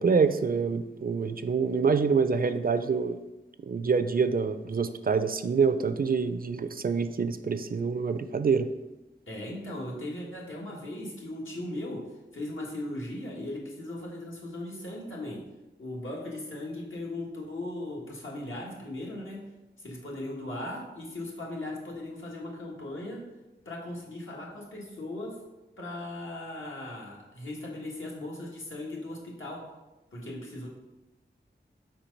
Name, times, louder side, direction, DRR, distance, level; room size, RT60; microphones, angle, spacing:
voice 1, 0.0-3.2 3.6-8.7, right 5 dB, 50° right, 11 dB, 0.4 m, -26 dB
voice 2, 9.3-15.5 15.8-19.5 19.8-23.3 23.6-25.4 25.8-29.8 30.1-30.7, left 1 dB, 85° left, -4 dB, 1.5 m, -38 dB
4.5 x 4.3 x 5.2 m, 1.0 s
wide cardioid pair, 70°, 20 cm